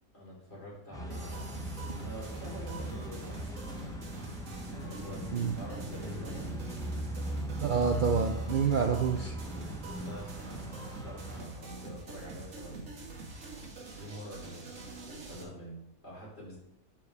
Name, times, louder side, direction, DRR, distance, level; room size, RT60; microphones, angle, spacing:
voice 1, 0.1-1.6 2.0-4.0 4.7-6.5 9.7-13.0 13.8-14.7 15.1-16.6, right 1 dB, 45° left, -5 dB, 3.7 m, -46 dB
sound 1, 0.9-11.4, right 1 dB, 5° left, 0.5 m, -39 dB
sound 2, 1.1-15.4, right 3 dB, 65° right, 1.7 m, -45 dB
voice 2, 7.6-9.4, right 6 dB, 85° right, 4 dB, 0.4 m, -28 dB
11.5 x 4.7 x 3.3 m, 0.81 s
omnidirectional pair, 1.5 m